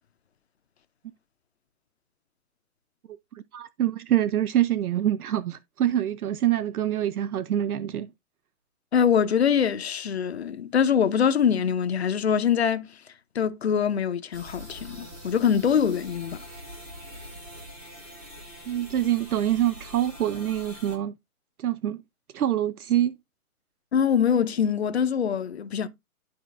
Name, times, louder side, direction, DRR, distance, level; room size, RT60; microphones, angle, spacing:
voice 1, 3.3-8.1 18.7-21.1 21.6-22.0 22.3-23.1, right 12 dB, 80° right, 0.6 m, -25 dB
voice 2, 8.9-12.9 13.3-16.4 23.9-25.9, left 7 dB, 45° left, 0.7 m, -23 dB
sound 1, 14.3-21.0, equal, 15° right, 0.9 m, -44 dB
12.0 x 4.3 x 2.4 m
hypercardioid pair, 170°, 44 cm